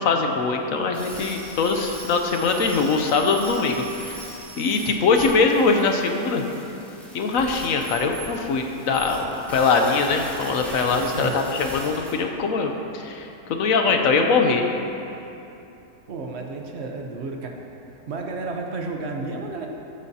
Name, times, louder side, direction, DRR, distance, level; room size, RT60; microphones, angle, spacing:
voice 1, 0.0-4.2 4.6-6.4 7.1-9.2 9.5-14.6, left 4 dB, 65° left, 4 dB, 1.1 m, -22 dB
sound 1, 0.9-12.1, right 1 dB, ahead, 2.0 m, -40 dB
voice 2, 11.1-11.4 16.1-17.5 18.1-19.7, right 3 dB, 50° right, 1 dB, 1.0 m, -31 dB
13.5 x 8.5 x 2.8 m, 2.9 s
omnidirectional pair, 1.7 m